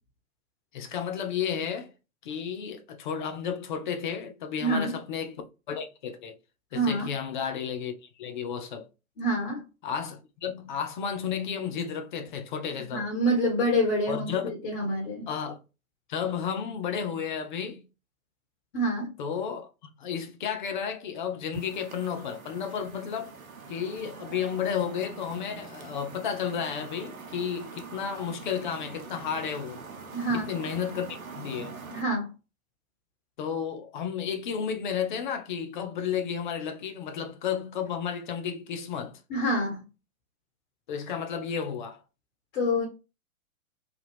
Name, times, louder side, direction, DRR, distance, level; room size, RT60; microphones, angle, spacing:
voice 1, 0.7-1.9 2.2-5.4 5.7-6.4 6.7-8.9 9.8-13.1 14.1-14.5 15.3-15.6 16.1-17.8 19.2-19.7 20.0-23.3 23.7-29.8 30.3-31.7 33.4-39.2 40.9-42.0, left 7 dB, 35° left, 0.5 m, -32 dB
voice 2, 4.6-5.0 6.7-7.1 9.2-9.6 12.9-14.3 14.6-15.3 18.7-19.1 30.1-30.5 31.9-32.3 39.3-39.8 42.5-42.9, equal, 50° left, 1.3 m, -26 dB
sound 1, 21.5-32.0, right 4 dB, 75° right, 0.9 m, -44 dB
3.2 x 2.3 x 3.2 m
figure-of-eight pair, 115°, 43 cm